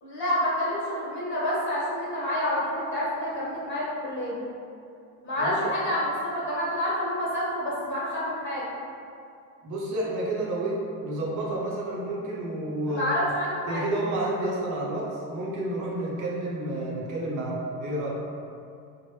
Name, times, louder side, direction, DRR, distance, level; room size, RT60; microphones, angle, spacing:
voice 1, 0.0-4.4 5.2-8.6 12.9-13.8, left 1 dB, 25° left, -7 dB, 1.3 m, -28 dB
voice 2, 5.4-5.7 9.6-13.3 13.7-18.2, right 1 dB, 45° right, -4 dB, 0.8 m, -30 dB
3.0 x 2.1 x 3.2 m, 2.5 s
supercardioid pair, 95°, 43 cm